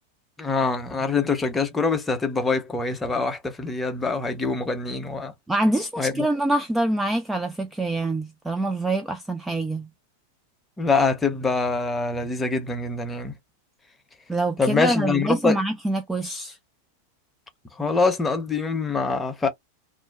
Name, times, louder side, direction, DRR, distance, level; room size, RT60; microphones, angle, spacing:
voice 1, 0.4-5.3 6.0-6.3 10.8-13.3 14.6-15.6 17.8-19.5, left 4 dB, 10° left, 0.7 m, -24 dB
voice 2, 5.5-9.9 14.3-16.6, right 1 dB, 10° right, 0.3 m, -25 dB
2.5 x 2.2 x 2.3 m
figure-of-eight pair, 90°, 0 cm